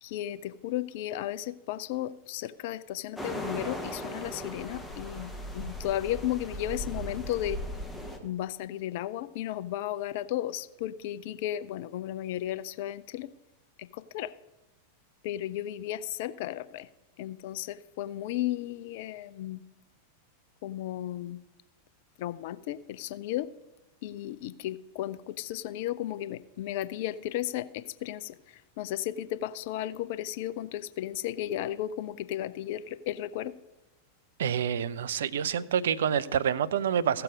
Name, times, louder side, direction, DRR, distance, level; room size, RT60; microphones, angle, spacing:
voice 1, 0.0-7.6 8.2-13.3 13.8-14.3 15.2-16.9 17.2-19.6 20.6-21.4 22.2-23.5 24.0-33.5, left 13 dB, 50° left, 16 dB, 0.4 m, -34 dB
sound 1, 3.2-8.2, equal, 5° left, 1.4 m, -38 dB
voice 2, 34.4-37.2, right 8 dB, 60° right, 15 dB, 0.5 m, -27 dB
15.0 x 6.9 x 5.2 m, 1.0 s
figure-of-eight pair, 90°, 0 cm